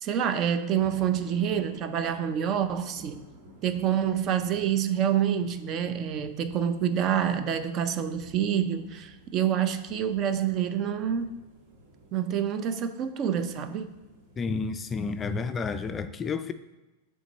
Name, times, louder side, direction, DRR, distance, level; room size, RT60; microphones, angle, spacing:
voice 1, 0.0-3.2 3.6-11.3 12.1-13.9, right 9 dB, 40° right, 11 dB, 0.5 m, -27 dB
sound 1, 0.6-15.9, right 1 dB, 70° right, 1.3 m, -52 dB
voice 2, 14.4-16.5, left 4 dB, 25° left, 10 dB, 0.3 m, -30 dB
7.3 x 3.6 x 4.0 m, 1.1 s
hypercardioid pair, 115°, 0 cm